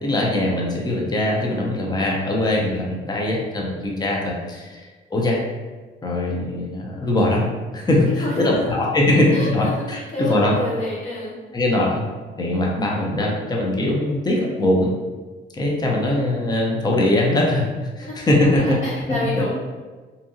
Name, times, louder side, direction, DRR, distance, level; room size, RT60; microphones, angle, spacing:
voice 1, 0.0-5.4 6.0-10.5 11.5-12.1 12.4-14.9 15.5-17.7 18.0-18.8 19.1-19.4, left 1 dB, 20° left, -2 dB, 0.6 m, -21 dB
voice 2, 7.8-8.6 9.3-11.4 18.0-18.1 18.4-19.5, left 1 dB, 35° left, -8 dB, 1.0 m, -29 dB
2.7 x 2.5 x 2.4 m, 1.3 s
cardioid pair, 90°, 20 cm